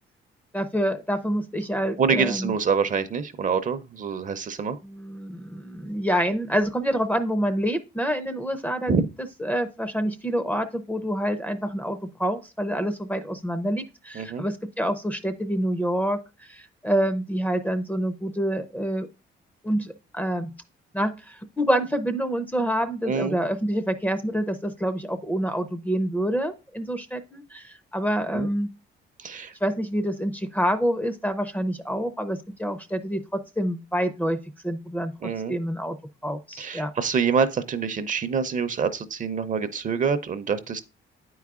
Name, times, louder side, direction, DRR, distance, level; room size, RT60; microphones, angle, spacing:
voice 1, 0.5-2.5 4.8-9.0 9.4-19.1 19.6-20.5 20.9-28.7 29.6-34.4 34.6-35.1 35.5-36.0 36.2-36.9, equal, 10° left, 0.5 m, -27 dB
voice 2, 2.0-4.8 8.9-9.1 14.1-14.4 23.0-23.4 28.3-28.5 29.2-29.5 35.2-35.5 36.6-40.8, right 6 dB, 40° right, 0.6 m, -26 dB
9.0 x 4.7 x 2.4 m
cardioid pair, 90°, 20 cm